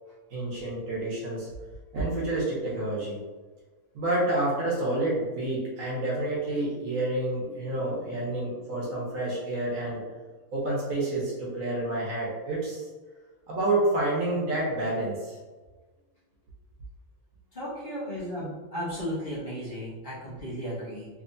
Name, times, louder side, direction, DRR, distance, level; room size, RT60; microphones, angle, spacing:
voice 1, 0.3-1.5 1.9-3.2 3.9-10.0 10.5-12.9 13.5-15.4, right 2 dB, 60° right, -5 dB, 1.3 m, -29 dB
voice 2, 17.5-21.1, equal, 35° left, -9 dB, 1.2 m, -35 dB
3.4 x 3.4 x 2.6 m, 1.3 s
omnidirectional pair, 1.6 m